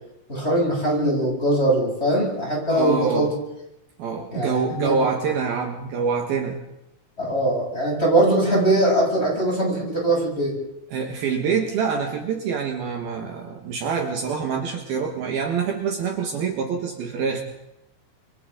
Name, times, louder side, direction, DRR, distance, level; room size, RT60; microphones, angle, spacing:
voice 1, 0.3-3.3 4.3-5.1 7.2-10.5, right 1 dB, 15° left, -4 dB, 8.1 m, -21 dB
voice 2, 2.7-3.3 4.0-6.6 10.9-17.4, right 5 dB, 65° right, 2 dB, 3.2 m, -26 dB
27.5 x 25.5 x 3.9 m, 0.85 s
omnidirectional pair, 5.0 m